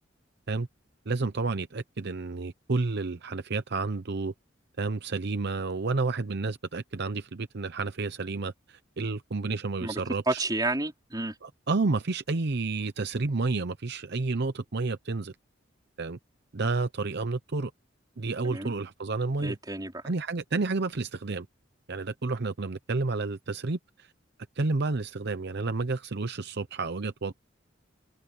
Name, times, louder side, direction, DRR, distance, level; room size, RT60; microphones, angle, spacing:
voice 1, 1.1-4.3 4.8-10.4 11.4-15.3 16.0-16.2 16.5-17.7 18.2-19.6 20.0-21.5 21.9-24.1 24.6-27.3, right 3 dB, 60° right, 0.8 m, -30 dB
voice 2, 9.8-11.4 18.4-18.7 19.4-20.1, right 2 dB, 20° right, 4.3 m, -31 dB
head